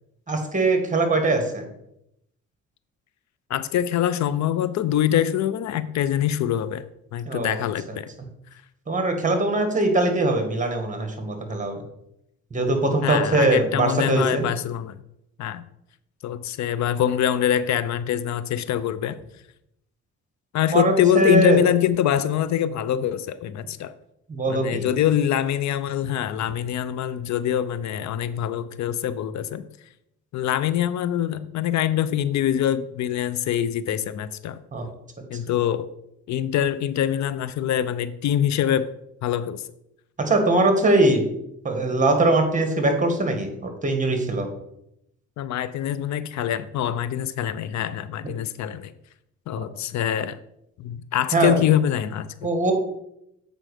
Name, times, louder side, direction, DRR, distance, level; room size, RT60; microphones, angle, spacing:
voice 1, 0.3-1.7 7.3-7.6 8.9-11.8 12.5-14.5 20.7-21.6 24.3-24.9 34.7-34.9 40.3-41.2 41.6-44.5 51.3-51.6 52.4-52.7, right 2 dB, 25° right, 5 dB, 1.8 m, -21 dB
voice 2, 3.5-6.8 7.1-8.1 8.5-8.6 13.0-15.0 15.4-15.6 16.2-19.2 20.5-23.9 24.5-29.6 30.3-34.6 35.3-35.9 36.3-38.9 39.2-39.6 45.4-48.9 49.5-50.4 50.8-52.5, left 10 dB, 65° left, 15 dB, 0.5 m, -24 dB
7.6 x 5.1 x 4.9 m, 0.81 s
cardioid pair, 90°, 30 cm